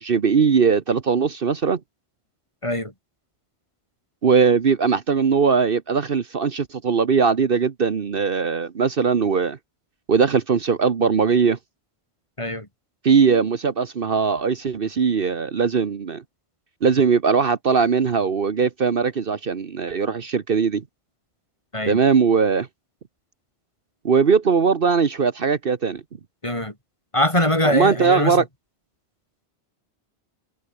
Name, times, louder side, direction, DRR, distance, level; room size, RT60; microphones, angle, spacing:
voice 1, 0.0-1.8 4.2-9.6 10.1-11.6 13.0-16.2 16.8-20.8 21.9-22.7 24.0-26.0 27.6-28.4, right 5 dB, 55° right, 1.3 m, -20 dB
voice 2, 26.4-26.7 27.1-28.4, left 1 dB, 30° left, 4.5 m, -22 dB
omnidirectional pair, 1.1 m